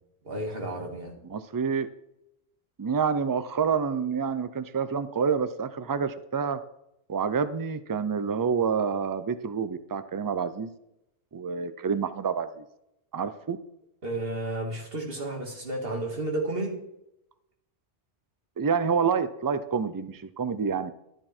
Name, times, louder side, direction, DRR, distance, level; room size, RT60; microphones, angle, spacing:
voice 1, 0.2-1.1 14.0-16.8, right 1 dB, 55° right, 1 dB, 2.3 m, -32 dB
voice 2, 1.3-1.9 2.8-6.6 7.1-10.7 11.3-12.6 13.1-13.6 18.6-20.9, right 6 dB, 30° right, 12 dB, 0.4 m, -28 dB
12.5 x 8.9 x 4.4 m, 0.84 s
omnidirectional pair, 1.1 m